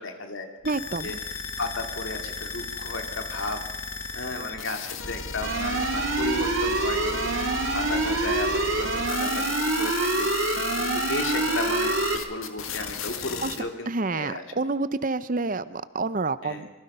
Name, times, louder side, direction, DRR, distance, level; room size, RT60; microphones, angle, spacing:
voice 1, 0.0-0.5 1.0-3.6 4.1-7.5 7.7-14.4 16.4-16.7, left 2 dB, 70° left, 4 dB, 2.5 m, -34 dB
sound 1, 0.6-13.6, left 6 dB, 85° left, 1.8 m, -35 dB
voice 2, 0.6-1.1 13.4-13.6 13.9-16.7, right 3 dB, 40° right, 15 dB, 0.7 m, -28 dB
sound 2, 5.4-12.2, right 3 dB, 65° right, 2.5 m, -26 dB
26.0 x 22.5 x 5.6 m, 1.4 s
head